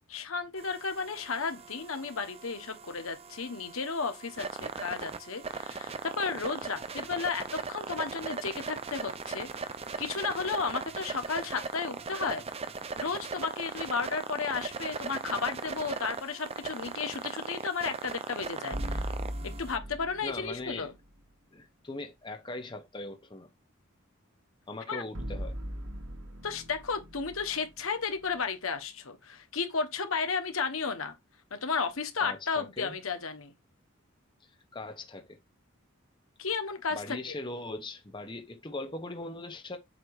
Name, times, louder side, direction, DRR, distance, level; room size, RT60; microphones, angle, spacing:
voice 1, 0.1-12.4 13.0-19.1 19.6-20.9 24.9-25.0 26.4-31.1 31.5-33.5 36.4-37.3, left 5 dB, 80° left, 1.2 m, -33 dB
sound 1, 0.6-19.8, right 5 dB, 30° right, 0.5 m, -39 dB
sound 2, 18.7-20.9 25.1-28.4, equal, 60° right, 1.3 m, -38 dB
voice 2, 20.2-20.9 21.5-23.5 24.7-25.6 32.2-32.9 34.4-35.4 36.9-39.8, left 2 dB, 20° left, 0.8 m, -40 dB
7.8 x 2.8 x 4.7 m
head